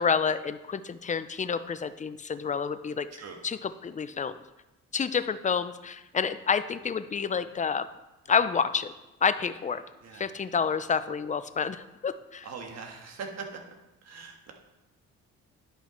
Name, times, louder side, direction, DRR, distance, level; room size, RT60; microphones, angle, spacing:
voice 1, 0.0-3.1 3.4-4.4 4.9-7.9 8.3-8.9 9.2-9.8 10.1-12.5, left 6 dB, 25° left, 12 dB, 0.5 m, -29 dB
voice 2, 12.4-13.4 14.0-14.5, right 5 dB, 60° right, 2 dB, 1.6 m, -41 dB
10.5 x 5.6 x 4.3 m, 0.98 s
cardioid pair, 90°, 30 cm